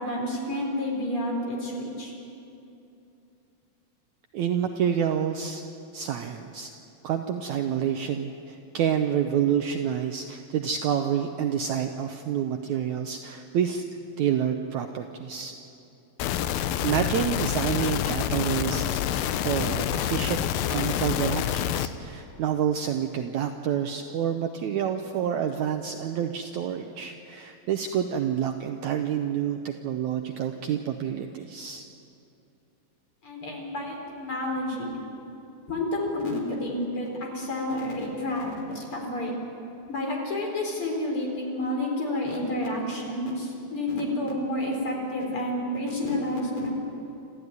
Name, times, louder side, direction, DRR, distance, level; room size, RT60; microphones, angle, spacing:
voice 1, 0.0-2.1 33.2-35.0 35.7-39.3 39.9-46.7, left 1 dB, 35° left, 0 dB, 4.9 m, -30 dB
voice 2, 4.3-5.6 5.9-6.7 7.0-13.9 14.2-15.5 16.8-20.4 20.7-31.9, right 9 dB, 75° right, 5 dB, 1.9 m, -28 dB
sound 1, 16.2-21.9, left 11 dB, 90° left, 2.6 m, -27 dB
27.5 x 14.0 x 9.6 m, 2.8 s
omnidirectional pair, 4.1 m